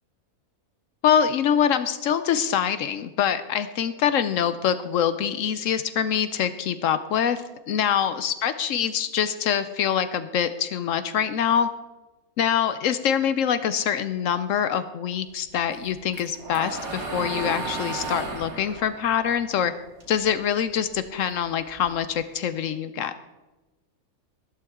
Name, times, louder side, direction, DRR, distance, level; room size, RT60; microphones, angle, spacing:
voice 1, 1.0-11.7 12.4-19.7 20.1-23.1, left 8 dB, 70° left, 12 dB, 0.9 m, -24 dB
sound 1, 15.7-20.2 20.6-22.2, right 3 dB, 75° right, 2.2 m, -34 dB
12.5 x 12.0 x 3.6 m, 1.1 s
omnidirectional pair, 1.6 m